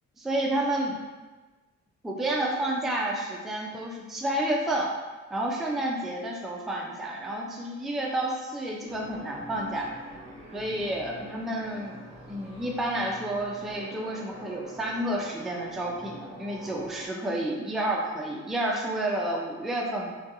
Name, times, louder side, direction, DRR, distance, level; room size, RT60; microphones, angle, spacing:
voice 1, 0.2-1.0 2.0-4.9 5.3-9.9 10.5-20.1, right 1 dB, ahead, -1 dB, 0.3 m, -30 dB
sound 1, 8.9-17.1, right 1 dB, 20° right, 0.8 m, -46 dB
2.4 x 2.3 x 2.7 m, 1.3 s
cardioid pair, 90°, 30 cm